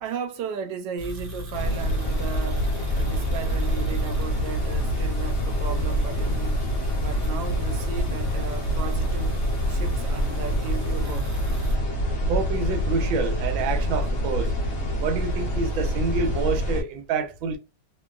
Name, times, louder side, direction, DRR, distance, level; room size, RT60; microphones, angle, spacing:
voice 1, 0.0-6.6 7.0-9.4 9.7-11.3, right 7 dB, 75° right, 1.0 m, -35 dB
sound 1, 1.0-11.8, left 2 dB, 55° right, 0.6 m, -38 dB
sound 2, 1.5-16.8, equal, 80° left, 0.6 m, -26 dB
voice 2, 12.3-14.5 15.0-17.6, right 4 dB, 90° right, 1.4 m, -27 dB
3.0 x 2.6 x 2.2 m
omnidirectional pair, 2.1 m